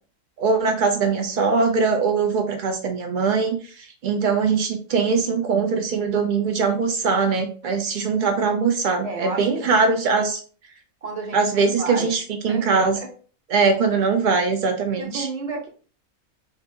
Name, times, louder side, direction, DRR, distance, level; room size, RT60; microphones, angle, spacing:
voice 1, 0.4-10.4 11.3-13.0 13.5-15.3, right 4 dB, 90° right, 4 dB, 0.4 m, -21 dB
voice 2, 9.0-9.8 11.0-12.2 12.5-13.1 15.0-15.7, right 3 dB, 35° right, 1 dB, 0.7 m, -32 dB
4.2 x 2.6 x 2.7 m, 0.40 s
omnidirectional pair, 1.5 m